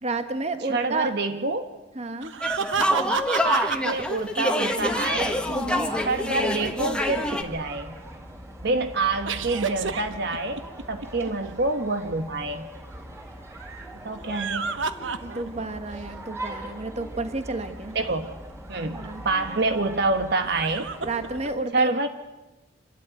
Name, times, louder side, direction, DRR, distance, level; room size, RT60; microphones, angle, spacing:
voice 1, 0.0-1.1 1.9-2.3 5.5-5.9 15.2-18.0 18.9-19.2 21.0-21.9, right 3 dB, 35° right, 8 dB, 1.5 m, -31 dB
voice 2, 0.6-1.7 3.4-5.4 6.0-8.0 8.6-12.7 14.0-14.7 17.9-18.3 18.7-20.9 21.7-22.1, right 3 dB, 60° right, 7 dB, 1.2 m, -27 dB
sound 1, 2.2-3.9 9.3-11.3 14.1-15.7 16.1-16.2 18.5-18.6 20.4-21.5, right 5 dB, 75° right, 1.1 m, -30 dB
sound 2, 2.4-7.4, left 1 dB, 5° left, 1.5 m, -26 dB
sound 3, 4.8-21.6, right 1 dB, 15° right, 4.0 m, -41 dB
26.0 x 13.0 x 9.1 m, 1.1 s
head